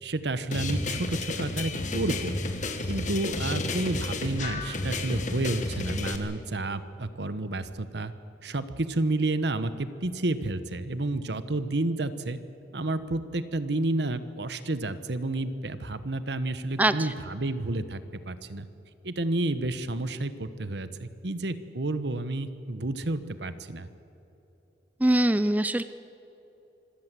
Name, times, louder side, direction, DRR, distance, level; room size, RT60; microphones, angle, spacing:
voice 1, 0.0-2.4 2.9-8.1 8.4-12.4 12.7-18.7 19.0-23.9, right 2 dB, 65° right, 12 dB, 1.1 m, -30 dB
sound 1, 0.5-6.2, left 2 dB, 45° left, 1.7 m, -31 dB
voice 2, 16.8-17.1 25.0-25.8, right 1 dB, 10° right, 13 dB, 0.4 m, -23 dB
25.5 x 16.0 x 7.6 m, 3.0 s
head